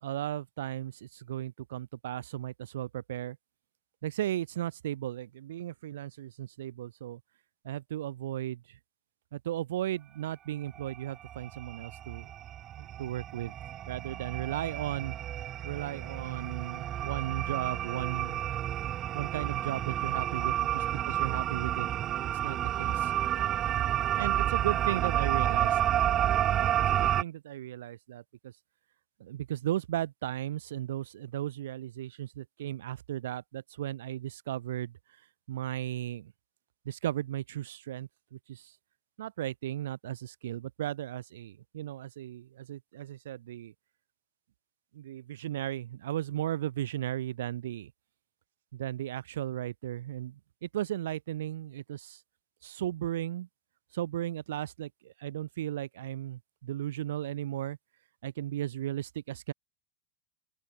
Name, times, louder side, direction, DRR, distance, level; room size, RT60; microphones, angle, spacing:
voice 1, 0.0-3.4 4.0-7.2 7.6-8.6 9.3-12.3 13.0-13.5 13.9-15.1 15.6-18.4 19.1-21.9 22.2-23.1 24.2-25.8 26.9-28.5 29.2-34.9 35.5-36.3 36.8-38.7 39.2-43.7 44.9-47.9 48.7-52.2 52.6-53.5 53.9-57.8 58.2-59.5, right 12 dB, 75° right, 2.9 m, -36 dB
sound 1, 10.8-11.0 11.2-27.2, right 12 dB, 40° right, 1.7 m, -30 dB
open air
hypercardioid pair, 85°, 0 cm